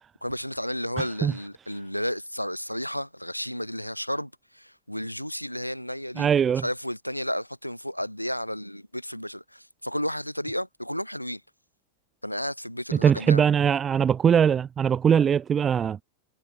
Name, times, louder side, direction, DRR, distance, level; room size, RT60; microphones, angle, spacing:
voice 1, 0.2-6.3 6.6-11.4 12.2-13.4, equal, 90° left, 0.7 m, -32 dB
voice 2, 6.2-6.6 13.0-16.0, right 8 dB, 20° right, 0.4 m, -21 dB
figure-of-eight pair, 90°, 0 cm